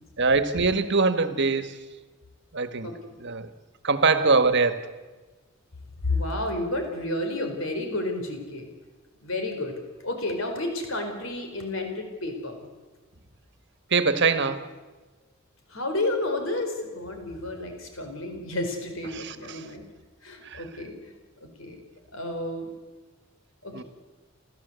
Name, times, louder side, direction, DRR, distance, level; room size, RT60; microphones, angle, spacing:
voice 1, 0.2-1.9 2.5-2.9 3.2-3.5 3.8-4.9 13.9-14.7 19.1-19.7 20.4-20.6 23.7-23.8, right 4 dB, 55° right, 11 dB, 1.5 m, -23 dB
voice 2, 6.0-8.7 9.2-9.8 10.0-12.7 15.7-19.8 20.2-21.1 21.4-21.8 22.1-22.7 23.6-23.8, left 2 dB, 70° left, 5 dB, 4.8 m, -31 dB
29.0 x 14.0 x 8.2 m, 1.3 s
head